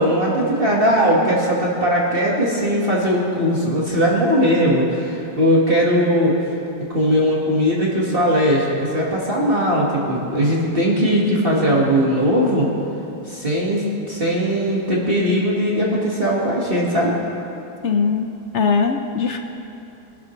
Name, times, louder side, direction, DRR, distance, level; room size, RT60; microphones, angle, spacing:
voice 1, 0.0-6.4 6.9-12.7 13.3-17.2, equal, 30° right, -4 dB, 1.8 m, -19 dB
voice 2, 17.8-18.3 18.5-19.4, left 5 dB, 65° left, 5 dB, 0.7 m, -20 dB
23.0 x 12.0 x 3.2 m, 2.7 s
omnidirectional pair, 1.9 m